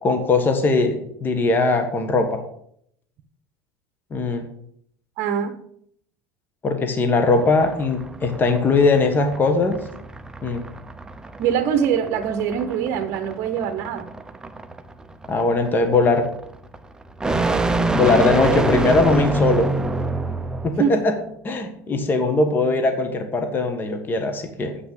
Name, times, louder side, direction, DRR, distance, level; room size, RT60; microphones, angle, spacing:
voice 1, 0.0-2.4 4.1-4.5 6.6-9.8 10.4-10.6 15.3-16.3 17.9-19.7 20.6-21.2 21.4-24.8, left 3 dB, 25° left, 6 dB, 1.4 m, -20 dB
voice 2, 5.2-5.6 11.4-14.1 20.8-20.9, right 8 dB, 55° right, 5 dB, 1.0 m, -23 dB
sound 1, 7.3-20.8, right 2 dB, 10° right, 0.7 m, -26 dB
8.1 x 5.9 x 7.9 m, 0.69 s
supercardioid pair, 120°, 8 cm